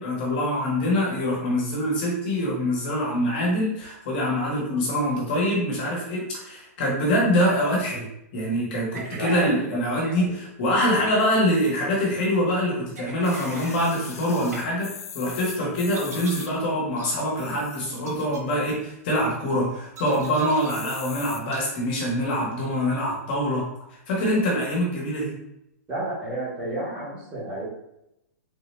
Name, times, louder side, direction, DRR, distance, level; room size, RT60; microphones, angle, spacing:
voice 1, 0.0-8.1 8.3-14.9 15.1-23.6 24.1-25.3, equal, 40° left, -4 dB, 1.3 m, -24 dB
sound 1, 8.9-9.6 10.0-10.1 11.0-11.4 13.0-13.8 14.5-14.6 15.9-16.6 17.0-17.1 18.0-18.4 20.0-20.7 21.5-21.6, right 3 dB, 85° right, 1.0 m, -41 dB
voice 2, 9.1-9.6 10.1-10.3 25.9-27.6, right 1 dB, 15° right, -8 dB, 1.5 m, -31 dB
sound 2, 13.2-16.5 17.3-18.0 18.4-18.5 18.7-18.8 19.2-19.6 20.1-20.3 20.7-21.4 22.1-22.2, left 7 dB, 65° left, 0.5 m, -40 dB
3.8 x 2.8 x 3.2 m, 0.84 s
hypercardioid pair, 170°, 9 cm